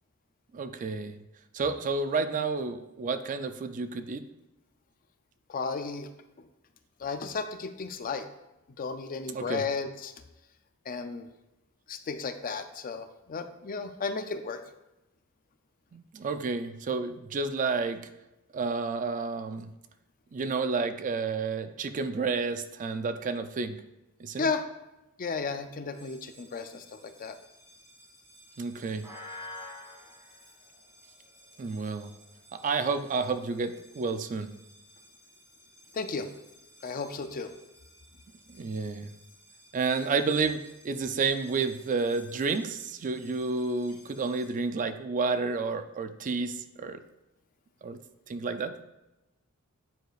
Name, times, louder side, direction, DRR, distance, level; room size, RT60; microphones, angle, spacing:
voice 1, 0.5-1.2 1.5-4.2 9.3-9.6 15.9-18.1 18.5-19.7 20.3-23.7 24.2-24.5 28.6-29.1 31.6-32.1 32.5-34.5 38.5-39.1 39.7-40.6 40.8-47.0 47.8-48.0 48.3-48.8, right 4 dB, 35° right, 10 dB, 0.3 m, -30 dB
voice 2, 5.5-6.1 7.0-8.3 8.8-10.1 10.9-11.3 11.9-14.6 24.4-24.6 25.2-27.4 35.9-36.3 36.8-37.5, left 4 dB, 40° left, 9 dB, 0.4 m, -34 dB
sound 1, 25.9-44.5, left 1 dB, 10° right, 1.8 m, -53 dB
9.0 x 4.7 x 2.4 m, 0.98 s
head